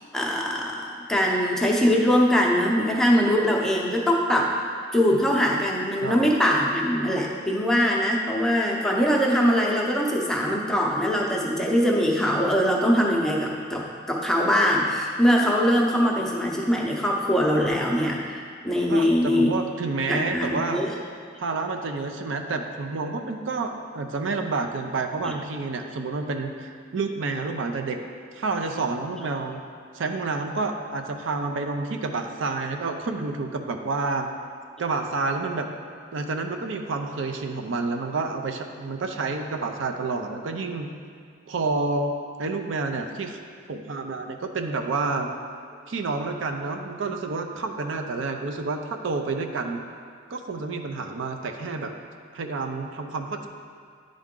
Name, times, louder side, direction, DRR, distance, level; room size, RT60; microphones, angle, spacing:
voice 1, 0.1-4.5 4.9-19.5 20.1-20.9 25.2-25.3, equal, ahead, -2 dB, 0.6 m, -22 dB
voice 2, 18.9-20.8 21.4-28.0 28.3-29.6 29.9-34.3 34.8-35.7 36.1-40.9 41.5-42.1 42.4-43.4 43.7-45.3 45.9-49.8 50.3-51.9 52.3-53.5, right 3 dB, 70° right, 5 dB, 0.5 m, -29 dB
10.0 x 3.7 x 3.7 m, 2.1 s
head